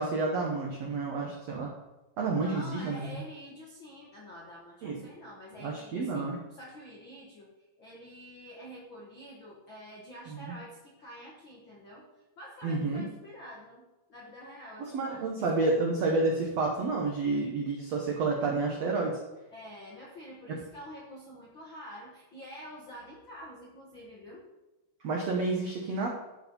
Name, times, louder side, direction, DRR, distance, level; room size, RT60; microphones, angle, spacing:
voice 1, 0.0-1.7 2.2-3.2 4.8-5.0 5.6-6.4 10.3-10.5 12.6-13.0 14.8-19.2 20.5-20.6 25.0-26.2, right 3 dB, 75° right, 0 dB, 1.5 m, -30 dB
voice 2, 2.4-12.1 12.4-15.7 19.5-24.4, equal, 65° left, -4 dB, 1.2 m, -47 dB
13.0 x 5.1 x 5.4 m, 1.1 s
omnidirectional pair, 4.7 m